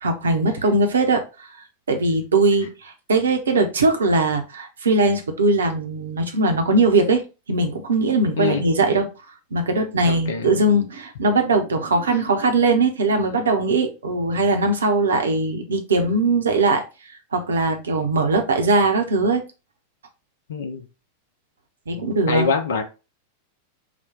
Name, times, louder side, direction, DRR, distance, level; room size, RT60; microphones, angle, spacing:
voice 1, 0.0-1.2 1.9-7.2 7.5-9.1 9.5-16.8 17.3-19.4 21.9-22.5, right 2 dB, 70° right, 0.8 m, -20 dB
voice 2, 10.0-10.7 20.5-20.8 22.3-22.8, left 5 dB, 60° left, 0.7 m, -24 dB
4.1 x 2.2 x 4.4 m
figure-of-eight pair, 90°, 0 cm